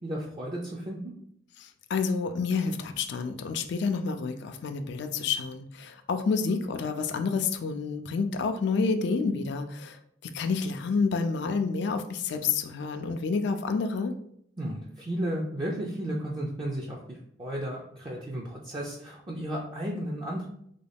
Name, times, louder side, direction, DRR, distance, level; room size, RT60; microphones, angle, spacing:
voice 1, 0.0-1.1 14.6-20.5, right 1 dB, 25° right, -2 dB, 0.4 m, -34 dB
voice 2, 1.6-14.1, left 4 dB, 65° left, 7 dB, 0.4 m, -29 dB
3.7 x 2.2 x 3.4 m, 0.71 s
head